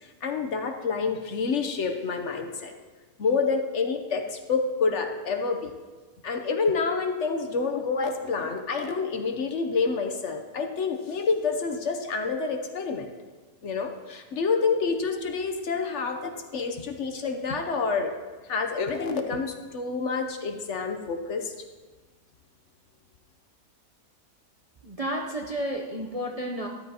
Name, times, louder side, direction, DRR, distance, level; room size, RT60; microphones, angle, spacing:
voice 1, 0.0-2.7 3.2-5.7 6.2-13.1 13.6-18.1 18.4-21.5, left 4 dB, 60° left, 5 dB, 1.0 m, -28 dB
voice 2, 24.8-26.7, right 1 dB, 35° right, 0 dB, 0.7 m, -31 dB
13.0 x 12.5 x 2.9 m, 1.4 s
omnidirectional pair, 1.5 m